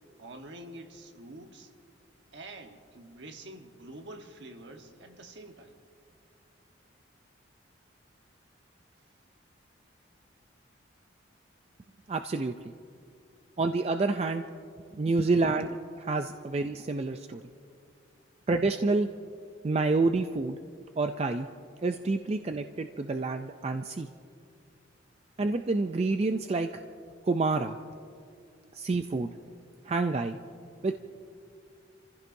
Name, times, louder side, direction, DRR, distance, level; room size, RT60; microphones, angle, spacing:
voice 1, 0.2-1.7 2.3-5.8, right 1 dB, 60° right, 5 dB, 1.2 m, -46 dB
voice 2, 12.1-12.7 13.6-14.4 14.9-17.4 18.5-19.1 19.6-20.6 21.0-21.5 21.8-24.1 25.4-26.7 27.2-27.8 28.7-29.3 29.8-30.4 30.8-30.9, right 3 dB, 30° right, 7 dB, 0.3 m, -28 dB
30.0 x 15.5 x 2.6 m, 2.4 s
head